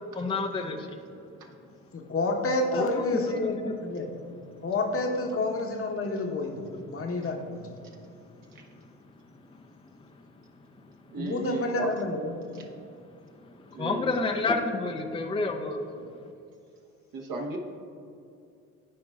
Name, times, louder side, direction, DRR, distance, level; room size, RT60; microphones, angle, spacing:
voice 1, 0.1-0.9 2.7-2.9 13.8-15.9, left 3 dB, 15° left, 3 dB, 0.6 m, -28 dB
voice 2, 1.9-4.1 4.6-7.6 11.2-12.4, left 2 dB, 35° left, 3 dB, 1.0 m, -29 dB
voice 3, 11.1-11.9 13.7-14.1 17.1-17.6, right 3 dB, 55° right, 1 dB, 1.4 m, -34 dB
14.0 x 4.7 x 2.4 m, 2.5 s
hypercardioid pair, 50°, 40 cm